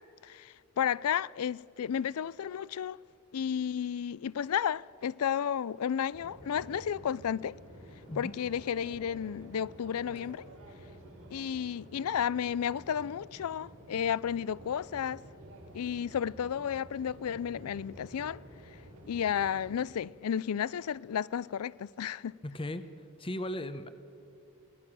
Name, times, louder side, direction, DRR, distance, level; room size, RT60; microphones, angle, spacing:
voice 1, 0.0-3.0 3.3-7.6 8.2-10.5 11.3-15.2 15.7-18.4 19.1-22.3, left 8 dB, 90° left, 0.4 m, -32 dB
sound 1, 6.1-19.7, right 1 dB, 85° right, 6.4 m, -51 dB
voice 2, 22.4-22.8 23.2-23.9, left 1 dB, 25° left, 0.9 m, -36 dB
25.5 x 18.5 x 6.2 m
head